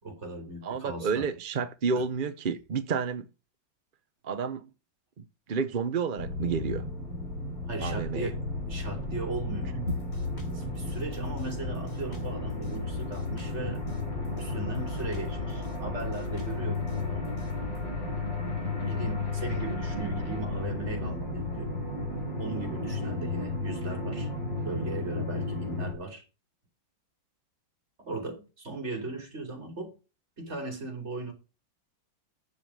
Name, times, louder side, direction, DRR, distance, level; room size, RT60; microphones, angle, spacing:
voice 1, 0.0-1.3 1.9-2.1 7.7-8.4 8.7-9.8 10.5-13.8 14.4-17.3 18.9-21.7 22.4-24.3 24.6-26.2 28.0-29.9 30.4-31.3, right 3 dB, 35° right, 3.5 m, -37 dB
voice 2, 0.6-3.3 4.2-4.7 5.2-6.8 7.8-8.3 9.8-9.9 21.0-21.1, right 5 dB, 55° right, 0.5 m, -30 dB
sound 1, 6.2-25.9, left 2 dB, 70° left, 5.2 m, -33 dB
Drum kit, 9.9-17.8, left 3 dB, 30° left, 3.5 m, -46 dB
9.7 x 7.3 x 6.1 m
omnidirectional pair, 2.1 m